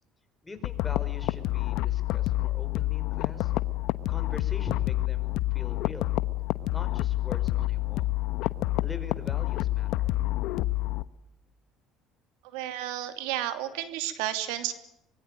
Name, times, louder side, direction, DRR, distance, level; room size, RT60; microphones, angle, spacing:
voice 1, 0.4-3.5 4.1-6.2 6.7-8.1 8.8-10.1, left 3 dB, 15° left, 7 dB, 5.2 m, -42 dB
sound 1, 0.6-11.0, left 16 dB, 75° left, 1.1 m, -28 dB
voice 2, 12.5-14.7, right 12 dB, 90° right, 9 dB, 2.7 m, -32 dB
24.5 x 21.5 x 8.9 m, 0.82 s
cardioid pair, 105°, 0 cm